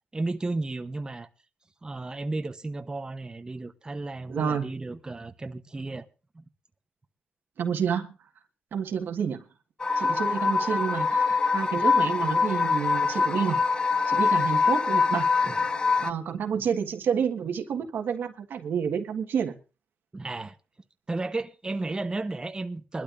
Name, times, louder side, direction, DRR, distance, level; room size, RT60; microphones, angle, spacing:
voice 1, 0.1-1.3 1.8-6.1 6.3-6.4 15.4-15.6 16.0-16.1 16.5-16.7 20.1-20.6 21.1-23.0, right 2 dB, 25° right, 0.9 m, -33 dB
voice 2, 4.3-4.7 7.6-8.1 8.7-9.4 10.0-13.6 14.1-15.3 15.7-19.6, right 7 dB, 85° right, 1.6 m, -29 dB
sound 1, 9.8-16.1, left 4 dB, 25° left, 0.5 m, -24 dB
22.5 x 12.0 x 2.6 m
cardioid pair, 90°, 3 cm